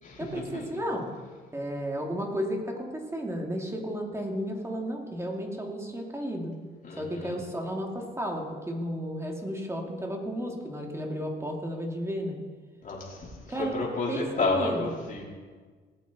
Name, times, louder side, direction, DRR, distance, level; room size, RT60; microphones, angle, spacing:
voice 1, 0.2-1.1 1.5-6.5 7.0-12.4 13.5-14.9, equal, 15° right, 1 dB, 2.4 m, -33 dB
voice 2, 6.8-7.4 12.8-15.2, left 3 dB, 40° left, -5 dB, 3.8 m, -31 dB
18.5 x 8.5 x 4.1 m, 1.5 s
cardioid pair, 90°, 20 cm